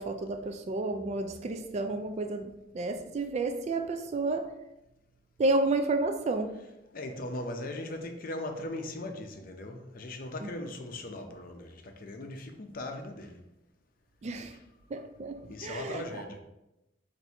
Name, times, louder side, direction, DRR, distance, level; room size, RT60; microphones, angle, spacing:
voice 1, 0.0-4.5 5.4-6.5 10.4-10.5 14.2-14.6 14.9-16.2, right 2 dB, 40° right, 7 dB, 0.3 m, -31 dB
voice 2, 6.9-13.4 15.5-16.4, left 1 dB, 50° left, 5 dB, 0.6 m, -39 dB
4.5 x 2.6 x 4.1 m, 0.91 s
head